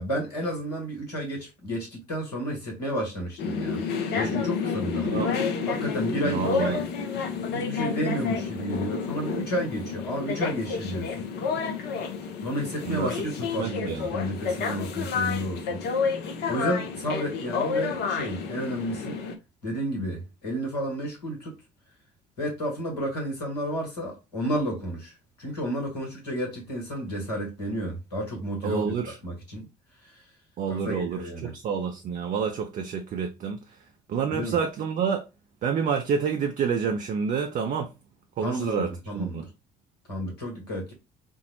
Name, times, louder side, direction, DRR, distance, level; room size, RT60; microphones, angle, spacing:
voice 1, 0.0-3.8 4.1-5.2 5.7-6.9 7.5-11.3 12.4-16.1 16.5-19.2 19.6-21.5 22.4-25.1 25.4-28.9 29.2-29.7 30.0-30.1 30.7-31.5 34.3-34.6 38.4-39.5 40.1-40.9, equal, 80° left, 1.2 m, -31 dB
sound 1, 3.4-19.4, left 5 dB, 55° left, 0.6 m, -30 dB
voice 2, 5.0-5.3 6.2-6.8 12.8-13.2 13.6-14.1 28.6-29.2 30.6-33.8 34.1-35.3 35.6-37.9 38.4-39.4, right 6 dB, 40° right, 0.5 m, -28 dB
4.3 x 2.0 x 2.8 m
figure-of-eight pair, 50°, 20 cm